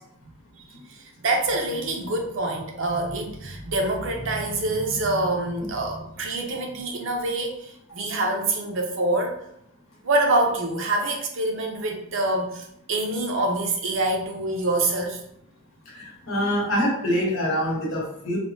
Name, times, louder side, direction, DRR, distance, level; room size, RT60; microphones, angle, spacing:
voice 1, 1.2-9.4 10.0-15.2, right 2 dB, 70° right, 2 dB, 0.6 m, -26 dB
voice 2, 15.9-18.4, equal, 80° left, -3 dB, 1.0 m, -25 dB
3.3 x 2.1 x 2.6 m, 0.74 s
head